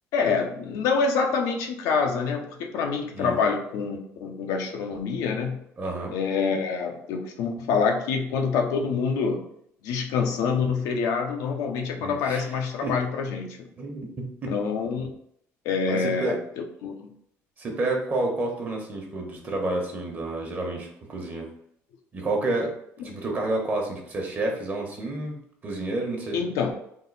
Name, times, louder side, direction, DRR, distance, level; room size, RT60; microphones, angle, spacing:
voice 1, 0.1-5.6 6.1-9.4 9.8-13.7 14.5-15.1 15.6-17.1 26.3-26.7, left 5 dB, 85° left, 2 dB, 0.7 m, -26 dB
voice 2, 5.8-6.1 12.0-12.4 12.8-12.9 13.8-14.5 15.9-16.4 17.6-21.5 22.1-22.7 23.0-26.4, right 2 dB, 35° right, 1 dB, 1.1 m, -29 dB
3.8 x 2.7 x 4.0 m, 0.72 s
cardioid pair, 120°, 6 cm